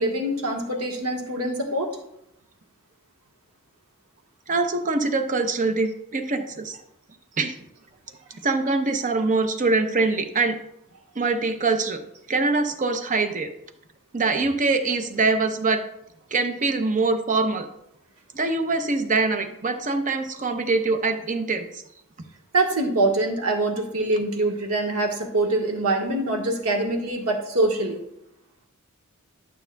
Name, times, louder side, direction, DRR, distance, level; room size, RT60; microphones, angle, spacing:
voice 1, 0.0-1.9 22.5-28.0, right 2 dB, 70° right, 1 dB, 1.4 m, -24 dB
voice 2, 4.5-6.8 7.4-7.5 8.4-10.6 11.2-12.0 12.3-13.5 14.1-15.8 16.3-17.7 18.3-21.8, right 3 dB, 35° right, 7 dB, 0.7 m, -23 dB
11.5 x 6.8 x 2.3 m, 0.79 s
head